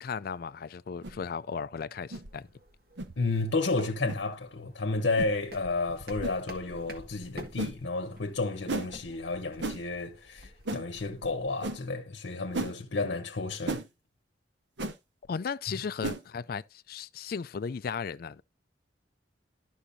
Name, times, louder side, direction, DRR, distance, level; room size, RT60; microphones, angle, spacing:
voice 1, 0.0-2.5 15.3-18.4, left 6 dB, 55° left, 0.4 m, -36 dB
sound 1, 1.0-1.2 2.1-2.3 3.0-3.1 4.1-4.2 5.2-5.3 6.2-6.4 7.6-7.8 8.7-8.9 9.6-9.8 10.7-10.8 11.6-11.8 12.5-12.7 13.7-13.9 14.8-15.0 16.0-16.2, right 2 dB, 75° right, 0.8 m, -33 dB
sound 2, 2.3-11.5, equal, 55° right, 1.6 m, -49 dB
voice 2, 3.2-13.8, left 3 dB, 75° left, 0.9 m, -32 dB
11.5 x 6.0 x 2.7 m
head